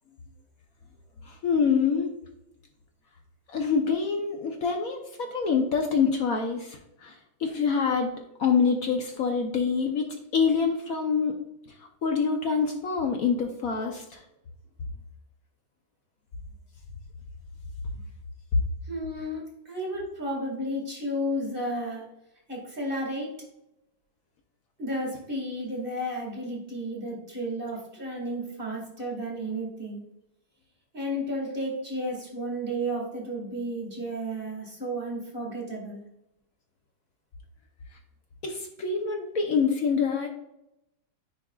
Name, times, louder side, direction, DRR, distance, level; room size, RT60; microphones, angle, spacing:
voice 1, 1.3-2.1 3.5-8.1 8.4-10.0 10.3-11.3 12.0-14.2 38.4-40.3, left 5 dB, 60° left, 3 dB, 1.0 m, -26 dB
voice 2, 18.9-22.0 22.5-23.3 24.8-30.0 30.9-36.0, equal, 25° right, -2 dB, 1.9 m, -32 dB
9.8 x 4.9 x 2.4 m, 0.84 s
omnidirectional pair, 2.2 m